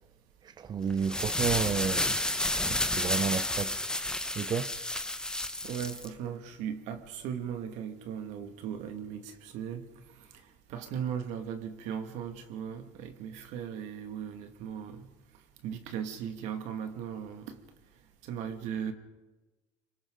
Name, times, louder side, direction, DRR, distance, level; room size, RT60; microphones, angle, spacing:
voice 1, 0.4-3.8 4.4-4.7, right 7 dB, 35° right, 0.7 m, -32 dB
sound 1, 0.9-6.1, left 1 dB, 5° left, 1.3 m, -31 dB
voice 2, 5.6-9.8 10.7-15.1 15.6-17.6 18.2-18.9, right 8 dB, 75° right, 2.3 m, -37 dB
27.5 x 24.5 x 4.0 m
supercardioid pair, 100°, 12 cm